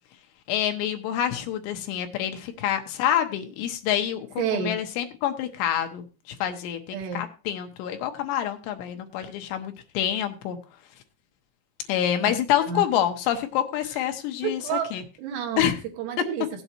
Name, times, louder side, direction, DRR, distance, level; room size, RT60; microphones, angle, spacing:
voice 1, 0.5-6.0 6.4-10.6 11.9-14.6 14.9-15.0 15.6-15.8, left 10 dB, 80° left, 6 dB, 2.9 m, -27 dB
voice 2, 4.4-4.8 6.9-7.3 12.2-12.4 12.7-12.8 13.8-14.0 14.4-14.9 15.2-16.6, right 7 dB, 75° right, 5 dB, 2.9 m, -30 dB
17.0 x 8.0 x 2.9 m, 0.31 s
omnidirectional pair, 5.3 m